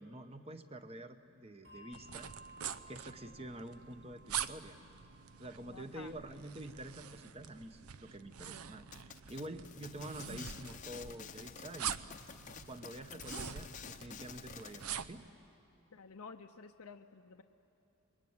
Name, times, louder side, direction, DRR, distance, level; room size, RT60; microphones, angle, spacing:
voice 1, 0.0-2.3 2.9-4.8 5.4-12.0 12.7-15.2, right 1 dB, 25° right, 8 dB, 0.9 m, -48 dB
Bell, 1.6-8.5, right 1 dB, 55° right, 5.7 m, -60 dB
sound 1, 1.9-15.3, right 8 dB, 85° right, 0.7 m, -45 dB
voice 2, 5.7-6.1 15.9-17.4, left 5 dB, 80° left, 7 dB, 0.7 m, -51 dB
sound 2, 8.9-14.8, left 7 dB, 35° left, 0.7 m, -50 dB
27.0 x 22.5 x 9.6 m, 3.0 s
head